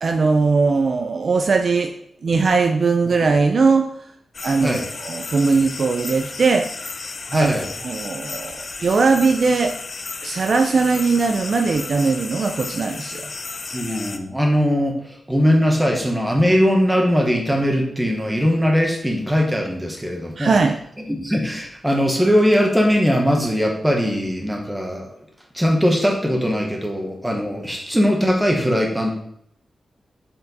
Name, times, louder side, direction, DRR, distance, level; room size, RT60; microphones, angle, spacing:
voice 1, 0.0-1.9 2.2-3.9 4.4-6.7 7.3-7.5 7.8-9.8 10.2-13.3 20.4-20.8, right 4 dB, 45° right, 5 dB, 0.4 m, -19 dB
sound 1, 4.3-14.2, left 4 dB, 35° left, 0.4 m, -33 dB
voice 2, 7.3-7.7 13.7-14.9 15.3-20.5 21.1-25.1 25.5-29.1, equal, 5° right, 1 dB, 1.1 m, -20 dB
6.7 x 4.3 x 4.1 m, 0.71 s
wide cardioid pair, 180°, 0 cm